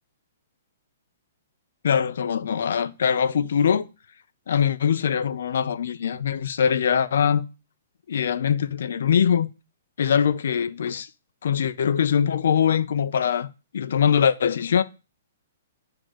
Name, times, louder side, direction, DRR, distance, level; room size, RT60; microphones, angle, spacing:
voice 1, 1.8-3.9 4.5-7.5 8.1-9.5 10.0-11.1 11.4-13.5 13.7-14.8, left 7 dB, 70° left, 0.8 m, -22 dB
7.9 x 3.9 x 6.3 m
hypercardioid pair, 165°, 0 cm